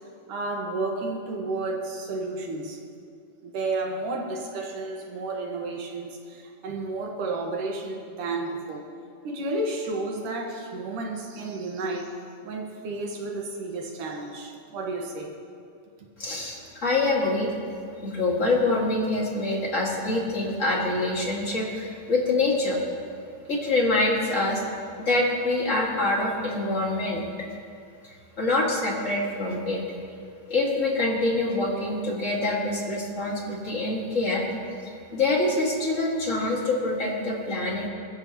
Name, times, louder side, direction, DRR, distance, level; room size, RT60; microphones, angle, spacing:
voice 1, 0.3-2.8 3.4-8.9 9.2-12.1 12.4-15.3 16.0-16.1, right 2 dB, 80° right, 1 dB, 3.2 m, -32 dB
voice 2, 16.2-17.5 18.0-22.8 23.4-24.6 25.1-27.2 28.0-29.8 30.5-34.5 34.8-37.9, left 2 dB, 25° left, -3 dB, 2.1 m, -25 dB
23.0 x 14.5 x 3.1 m, 2.4 s
omnidirectional pair, 3.6 m